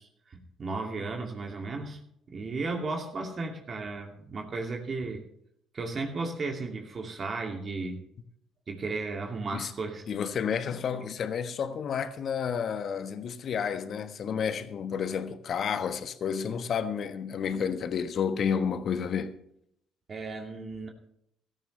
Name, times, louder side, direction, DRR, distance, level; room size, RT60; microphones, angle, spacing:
voice 1, 0.0-2.0 2.3-5.2 5.7-8.1 8.7-10.1 20.1-20.9, right 3 dB, 40° right, 2.5 m, -35 dB
voice 2, 10.1-19.3, left 7 dB, 50° left, 1.2 m, -31 dB
16.0 x 14.5 x 3.3 m
hypercardioid pair, 55°, 0 cm